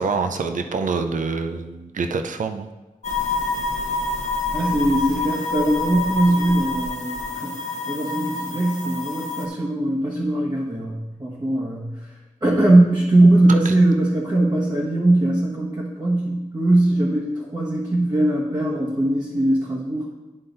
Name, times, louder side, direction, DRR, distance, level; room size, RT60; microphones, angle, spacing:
voice 1, 0.0-2.7 13.7-13.8, right 4 dB, 70° right, 7 dB, 0.5 m, -26 dB
sound 1, 3.0-9.5, left 3 dB, 55° left, 0.7 m, -27 dB
voice 2, 4.5-7.5 7.9-12.1 12.4-20.1, right 1 dB, 30° right, -7 dB, 1.1 m, -20 dB
9.8 x 3.8 x 3.9 m, 1.1 s
wide cardioid pair, 95°, 14 cm